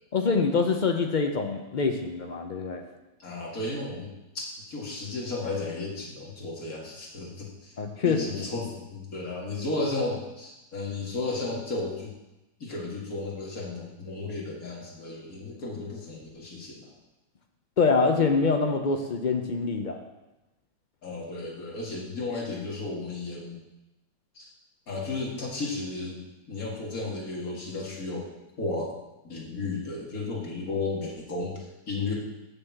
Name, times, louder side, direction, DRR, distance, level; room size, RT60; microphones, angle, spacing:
voice 1, 0.1-2.8 7.8-8.5 17.8-20.0, left 4 dB, 70° left, 4 dB, 0.4 m, -25 dB
voice 2, 3.2-7.8 8.0-12.1 12.6-16.9 21.0-23.6 24.4-24.5 24.9-26.2 26.5-28.3 28.6-28.9 29.2-32.1, left 3 dB, 55° left, -2 dB, 2.4 m, -34 dB
7.3 x 6.7 x 7.2 m, 1.0 s
omnidirectional pair, 1.9 m